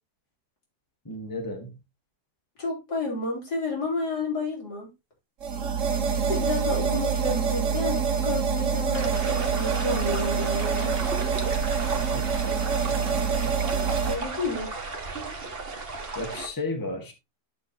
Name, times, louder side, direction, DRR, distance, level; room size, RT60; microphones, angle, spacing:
voice 1, 1.0-1.8 12.0-13.6 16.1-17.1, left 2 dB, 15° left, 1.6 m, -35 dB
voice 2, 2.6-4.9 6.3-11.0 14.1-14.7, left 2 dB, 80° left, 4.2 m, -31 dB
sound 1, 5.4-14.2, right 6 dB, 55° right, 1.5 m, -26 dB
sound 2, 8.9-16.5, right 3 dB, 35° right, 1.8 m, -34 dB
11.5 x 6.5 x 2.9 m
omnidirectional pair, 1.7 m